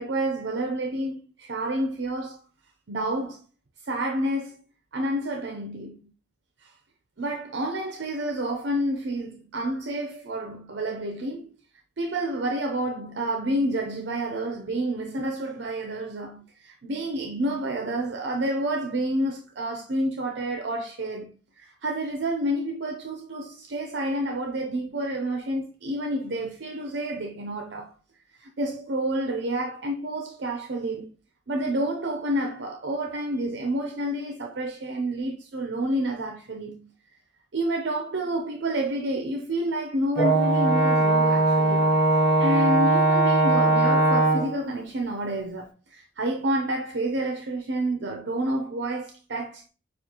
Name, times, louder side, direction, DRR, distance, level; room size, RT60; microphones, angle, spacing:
voice 1, 0.0-2.4 2.9-3.4 3.9-4.6 4.9-6.1 6.6-6.7 7.2-11.5 12.0-27.9 28.4-31.1 31.5-36.9 37.5-42.0 42.4-49.6, right 1 dB, 70° right, 0.6 m, -29 dB
Brass instrument, 40.2-44.6, right 2 dB, 45° left, 1.2 m, -20 dB
6.8 x 2.4 x 2.9 m
head